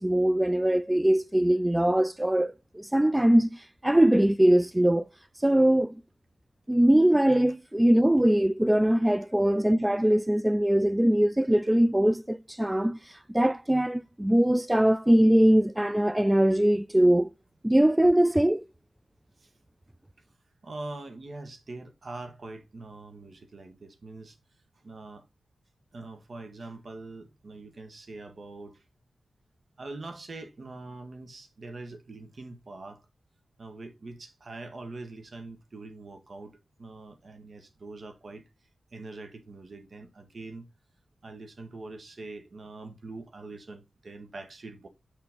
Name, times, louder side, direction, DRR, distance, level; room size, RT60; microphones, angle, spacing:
voice 1, 0.0-5.1 5.4-5.9 6.7-17.3 17.6-18.6, right 1 dB, 10° right, 0.4 m, -22 dB
voice 2, 20.6-24.4 24.8-25.3 25.9-28.8 29.8-33.0 33.6-38.4 38.9-40.7 41.2-44.9, right 2 dB, 60° right, 1.8 m, -43 dB
6.6 x 5.5 x 3.8 m
cardioid pair, 50°, 0 cm